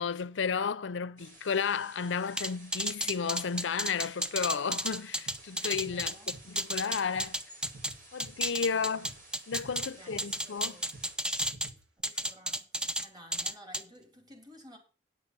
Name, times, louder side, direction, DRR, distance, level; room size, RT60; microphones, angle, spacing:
voice 1, 0.0-6.1 6.5-7.4 8.1-9.1 9.5-10.8, left 6 dB, 80° left, 0.6 m, -33 dB
sound 1, 1.2-11.2, right 2 dB, 55° right, 4.5 m, -54 dB
sound 2, 2.4-7.9 8.2-9.9 10.2-11.7 12.0-13.0 13.3-13.8, equal, 5° right, 0.5 m, -32 dB
sound 3, 4.9-5.0 5.3-5.5 5.7-6.8 7.1-7.4 7.6-8.8 9.0-9.3 9.5-10.7 10.9-11.1 11.4-12.0, right 2 dB, 80° right, 1.6 m, -51 dB
voice 2, 5.9-6.4 8.6-8.9 9.9-10.9 12.0-14.8, equal, 25° right, 2.3 m, -53 dB
9.5 x 6.6 x 5.4 m
head